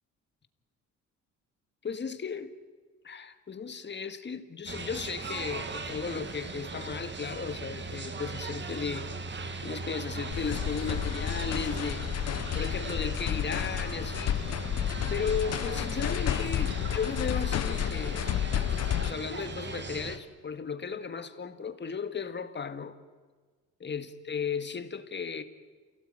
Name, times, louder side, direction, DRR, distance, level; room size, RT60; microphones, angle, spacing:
voice 1, 1.8-2.6 3.0-9.1 9.6-12.1 12.5-14.4 15.1-18.4 19.0-23.0 23.8-25.4, left 5 dB, 35° left, 1.9 m, -35 dB
sound 1, 4.7-20.2, right 3 dB, 40° right, 2.2 m, -38 dB
sound 2, 10.3-19.1, left 11 dB, 55° left, 0.8 m, -31 dB
28.5 x 17.5 x 9.1 m
cardioid pair, 90°, 30 cm